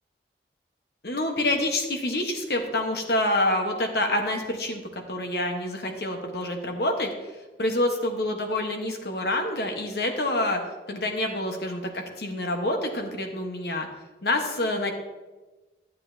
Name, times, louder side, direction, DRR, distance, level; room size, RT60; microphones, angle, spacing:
voice 1, 1.0-7.3 7.6-10.6 10.9-13.9 14.2-14.9, left 1 dB, 60° left, 3 dB, 1.2 m, -27 dB
12.0 x 8.2 x 2.7 m, 1.2 s
head